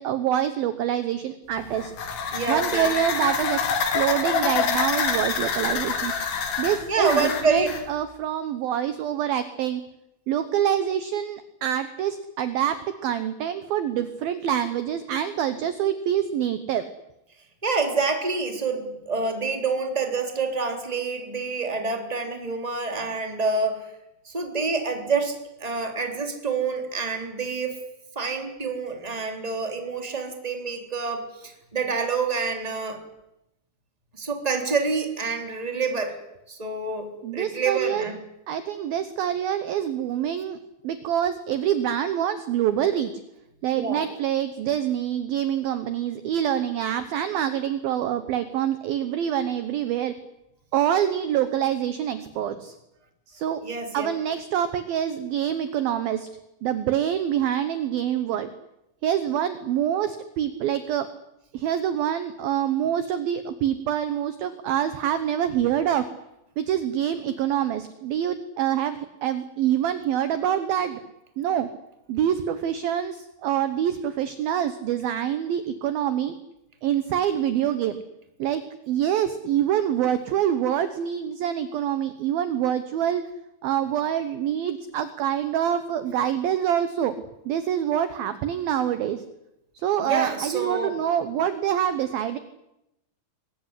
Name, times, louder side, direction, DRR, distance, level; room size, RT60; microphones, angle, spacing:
voice 1, 0.0-1.9 2.5-6.1 6.6-9.8 10.3-16.9 37.2-38.1 38.5-40.6 40.8-43.2 43.6-50.2 50.7-52.8 53.3-53.6 53.9-56.3 56.6-58.5 59.0-61.1 61.5-66.1 66.6-71.0 71.4-71.7 72.1-76.3 76.8-78.0 78.4-83.3 83.6-87.2 87.5-89.2 89.7-92.4, right 10 dB, 75° right, 11 dB, 2.3 m, -26 dB
sound 1, 1.6-7.8, left 6 dB, 75° left, 4.9 m, -27 dB
voice 2, 2.3-2.9 6.9-7.7 17.6-23.9 24.2-27.7 28.1-33.0 34.1-36.2 36.5-38.2 43.7-44.0 53.6-54.1 90.0-90.9, right 4 dB, 10° right, 4 dB, 2.7 m, -27 dB
22.5 x 20.5 x 9.8 m, 0.88 s
omnidirectional pair, 5.6 m